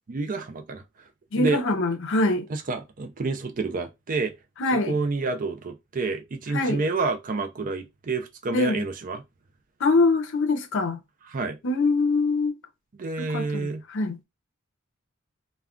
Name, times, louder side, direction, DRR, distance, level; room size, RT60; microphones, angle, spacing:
voice 1, 0.1-0.8 1.3-1.6 2.5-4.3 4.9-9.2 11.3-11.6 13.0-13.8, right 3 dB, 40° right, 0.5 m, -29 dB
voice 2, 1.3-2.5 4.6-5.0 6.5-6.8 8.5-8.9 9.8-11.0 11.6-12.6 13.2-14.2, left 3 dB, 60° left, 0.6 m, -24 dB
2.3 x 2.2 x 3.6 m
head